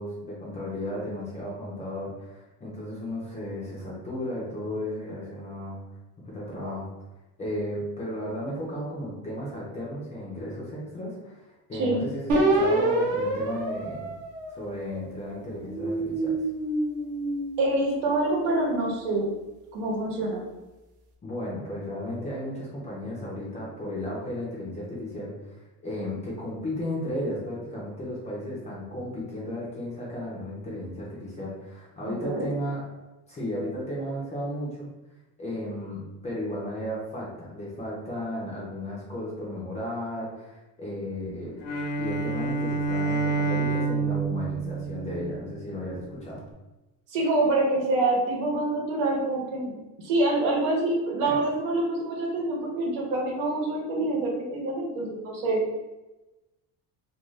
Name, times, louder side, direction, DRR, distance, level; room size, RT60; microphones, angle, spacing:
voice 1, 0.0-5.8 6.2-6.9 7.4-14.1 14.5-16.3 21.2-32.8 33.3-34.9 35.4-41.6 42.0-46.4 51.2-51.3, left 1 dB, 15° left, -5 dB, 0.4 m, -34 dB
sound 1, 12.3-15.0 15.6-18.1, right 2 dB, 45° right, 0.6 m, -27 dB
voice 2, 17.6-19.3 19.7-20.4 32.1-32.4 47.1-55.6, right 2 dB, 85° right, -1 dB, 1.0 m, -26 dB
Bowed string instrument, 41.6-45.8, right 3 dB, 80° left, 0.7 m, -28 dB
2.4 x 2.3 x 3.1 m, 1.0 s
cardioid pair, 150°, 44 cm